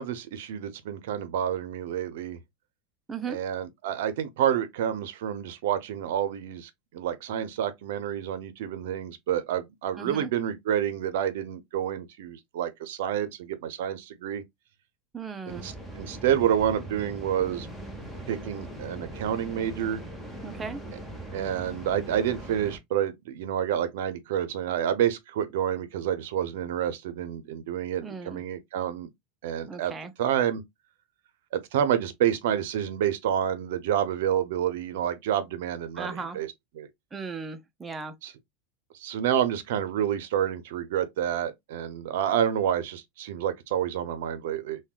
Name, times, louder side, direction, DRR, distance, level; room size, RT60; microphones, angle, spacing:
voice 1, 0.0-2.4 3.3-14.4 15.5-17.7 18.3-20.0 21.3-29.1 29.4-29.9 30.2-30.6 31.5-36.5 36.8-36.9 38.2-38.3 39.0-44.8, right 10 dB, 80° right, 0.5 m, -28 dB
voice 2, 10.0-10.3 15.1-15.7 20.4-20.8 28.0-28.4 29.7-30.1 36.0-36.4 37.1-38.1, right 5 dB, 15° right, 0.5 m, -36 dB
sound 1, 15.5-22.8, right 1 dB, 5° left, 0.9 m, -40 dB
3.5 x 2.2 x 2.3 m
supercardioid pair, 125°, 0 cm